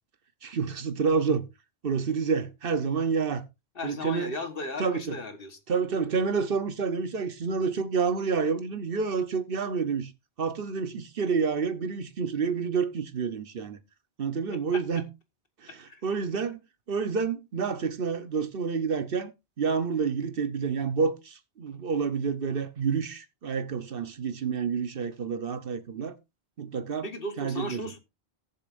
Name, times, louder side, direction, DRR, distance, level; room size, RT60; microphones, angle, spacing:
voice 1, 0.4-1.4 1.8-3.4 3.8-4.3 4.8-5.2 5.7-10.1 10.4-13.8 14.2-15.0 15.6-16.6 16.9-19.3 19.6-26.1 26.6-27.1 27.4-27.8, right 5 dB, 60° right, 1.1 m, -28 dB
voice 2, 3.7-5.6 14.7-14.8 15.9-16.0 27.0-28.0, left 2 dB, 60° left, 1.6 m, -36 dB
18.5 x 7.0 x 2.5 m
omnidirectional pair, 1.1 m